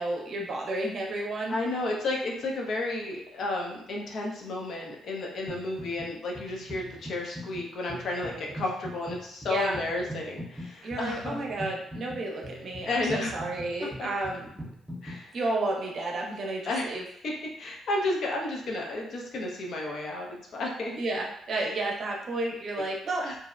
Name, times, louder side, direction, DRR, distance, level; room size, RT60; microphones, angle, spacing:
voice 1, 0.0-1.6 9.5-9.8 10.8-14.5 15.3-17.0 20.9-23.2, right 2 dB, 55° right, -1 dB, 0.6 m, -31 dB
voice 2, 1.5-11.4 12.9-13.4 14.0-14.1 15.0-15.3 16.6-16.9 17.2-17.3 17.6-20.9 21.5-21.7 23.2-23.4, left 2 dB, 60° left, -1 dB, 0.6 m, -32 dB
sound 1, 5.5-6.1 6.3-15.2, equal, 10° right, 0.6 m, -42 dB
2.6 x 2.0 x 2.4 m, 0.71 s
cardioid pair, 90°, 0 cm